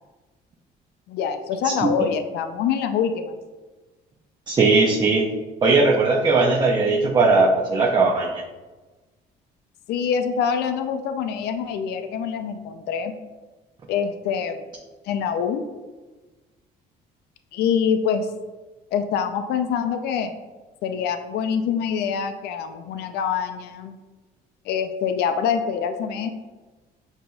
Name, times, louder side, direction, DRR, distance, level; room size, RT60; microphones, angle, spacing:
voice 1, 1.1-3.3 9.9-13.1 13.9-14.6 15.1-15.6 17.5-18.3 18.9-20.3 20.8-24.0 24.7-26.3, left 7 dB, 75° left, 7 dB, 0.4 m, -25 dB
voice 2, 4.5-5.3 5.6-8.4, right 3 dB, 25° right, -2 dB, 0.5 m, -18 dB
5.9 x 2.6 x 2.3 m, 1.2 s
cardioid pair, 110°, 17 cm